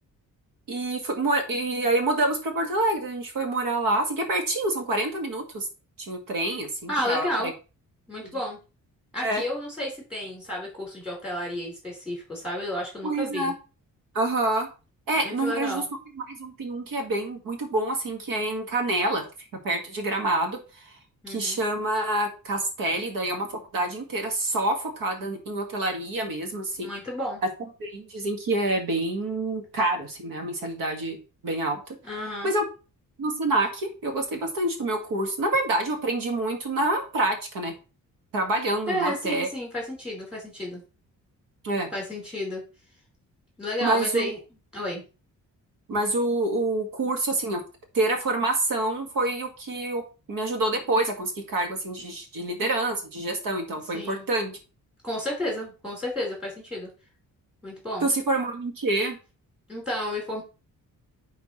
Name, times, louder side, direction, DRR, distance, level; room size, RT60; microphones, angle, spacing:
voice 1, 0.7-5.7 6.0-7.5 8.2-8.4 9.2-9.4 13.0-13.5 14.1-14.7 15.1-15.8 16.2-19.2 19.6-21.0 21.3-26.9 27.8-31.8 32.4-32.6 33.2-37.7 38.3-39.5 41.6-41.9 43.8-44.3 45.9-47.6 47.9-50.0 50.3-54.6 58.0-59.2, right 2 dB, 90° right, 4 dB, 2.0 m, -27 dB
voice 2, 6.9-7.5 8.1-8.6 9.1-13.5 15.2-15.8 21.2-21.6 26.8-27.4 32.0-32.5 38.9-40.8 41.9-42.6 43.6-44.4 44.7-45.0 53.9-54.3 55.0-56.9 57.6-58.1 59.7-60.4, left 1 dB, 5° right, -3 dB, 4.4 m, -31 dB
9.6 x 4.3 x 3.2 m, 0.32 s
wide cardioid pair, 155°, 33 cm